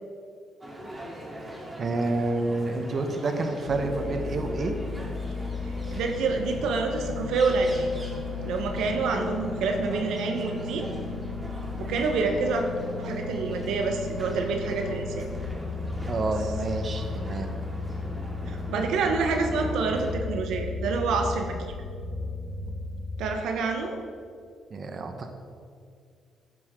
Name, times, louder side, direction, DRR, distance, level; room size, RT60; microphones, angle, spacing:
sound 1, 0.6-20.1, equal, 20° right, 2.6 m, -42 dB
voice 1, 1.8-4.8 16.1-17.5 24.7-25.3, right 2 dB, 45° right, 5 dB, 1.1 m, -29 dB
sound 2, 3.7-23.3, left 4 dB, 80° left, 1.9 m, -35 dB
voice 2, 5.9-7.9 8.4-10.9 11.8-12.6 13.0-15.2 18.5-21.8 23.2-24.0, right 4 dB, 80° right, 4 dB, 1.0 m, -27 dB
11.5 x 9.9 x 3.7 m, 2.3 s
cardioid pair, 90°, 0 cm